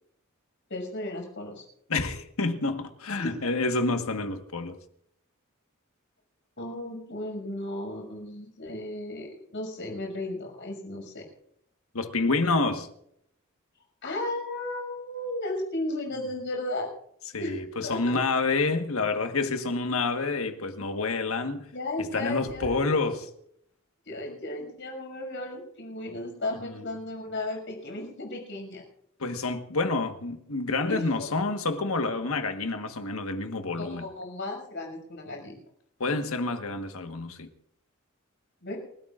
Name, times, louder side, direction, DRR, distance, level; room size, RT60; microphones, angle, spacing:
voice 1, 0.7-1.6 3.2-3.4 6.6-11.2 14.0-16.9 17.4-18.2 21.7-22.9 24.0-28.8 30.9-31.3 33.8-35.6 38.6-38.8, left 2 dB, 60° left, 6.2 m, -35 dB
voice 2, 1.9-4.8 11.9-12.9 17.3-21.7 22.1-23.3 26.7-26.8 29.2-34.1 36.0-37.5, left 3 dB, 85° left, 1.5 m, -28 dB
29.5 x 13.5 x 2.5 m
head